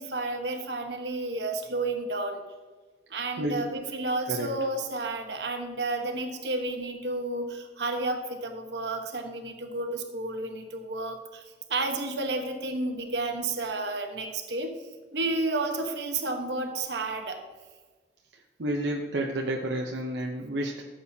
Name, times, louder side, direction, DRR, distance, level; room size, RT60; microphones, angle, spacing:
voice 1, 0.0-2.4 3.1-11.4 11.7-14.7 15.1-17.4, right 2 dB, 70° right, 4 dB, 1.2 m, -31 dB
voice 2, 3.4-3.8 4.3-4.7 18.3-20.8, right 1 dB, 85° right, 1 dB, 0.8 m, -31 dB
14.0 x 7.6 x 2.8 m, 1.3 s
head